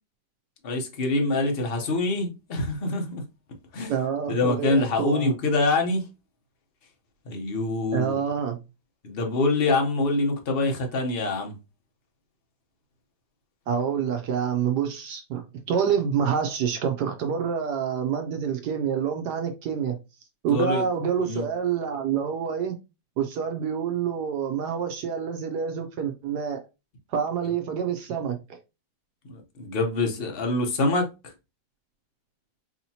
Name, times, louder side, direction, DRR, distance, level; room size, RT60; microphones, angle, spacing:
voice 1, 0.6-3.2 3.7-3.9 4.3-6.0 7.3-8.2 9.0-11.5 20.5-20.9 21.2-21.4 29.3-31.3, left 2 dB, 50° left, 0.7 m, -25 dB
voice 2, 3.9-5.3 7.9-8.6 13.7-20.0 20.4-22.7 23.2-26.6 27.1-28.6, right 7 dB, 70° right, 1.1 m, -27 dB
4.8 x 2.9 x 2.7 m
omnidirectional pair, 2.1 m